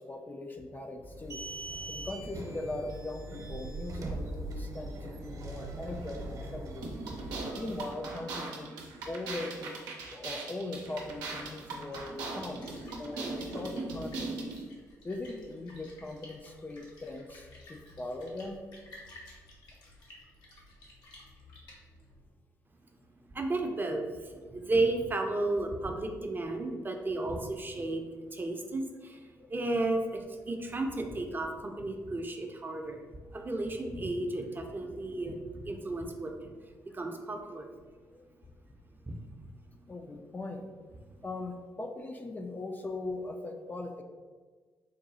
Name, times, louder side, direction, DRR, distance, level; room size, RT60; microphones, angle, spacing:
voice 1, 0.0-1.5 1.9-6.9 7.6-8.8 9.1-9.7 10.1-12.7 13.0-14.3 15.0-18.6 29.4-29.5 38.1-38.2 39.9-40.6 41.2-44.0, left 2 dB, 25° left, 4 dB, 0.4 m, -40 dB
sound 1, 1.0-7.9, right 2 dB, 55° right, 0.8 m, -41 dB
sound 2, 6.8-14.6, right 3 dB, 90° right, 0.6 m, -39 dB
Splash splatter, 11.7-22.3, left 1 dB, 75° left, 0.9 m, -54 dB
voice 2, 23.3-33.1 33.3-36.5 36.9-37.7 39.1-39.2, right 2 dB, 30° right, 3 dB, 0.6 m, -33 dB
3.8 x 2.2 x 4.0 m, 1.5 s
supercardioid pair, 60°, 7 cm